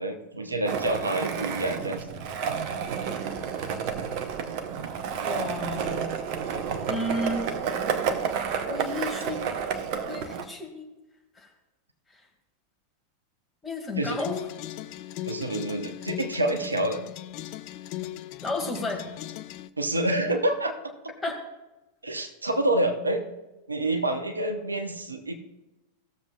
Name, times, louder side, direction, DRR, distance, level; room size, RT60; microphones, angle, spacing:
voice 1, 0.0-2.2 6.5-6.7 14.0-14.2 15.3-17.0 19.8-20.7 22.0-23.2 23.7-25.3, right 1 dB, 80° right, 6 dB, 0.9 m, -27 dB
Skateboard, 0.6-10.4, right 7 dB, 45° right, 0.8 m, -30 dB
voice 2, 5.2-6.1 6.9-7.5 8.7-9.5 10.1-10.8 11.4-11.5 12.1-12.3 13.6-14.4 18.4-19.0 21.2-21.4, left 1 dB, 10° left, -1 dB, 2.1 m, -32 dB
sound 1, 14.1-19.7, left 14 dB, 45° left, 0.4 m, -38 dB
17.0 x 7.1 x 2.4 m, 1.0 s
figure-of-eight pair, 90°, 0 cm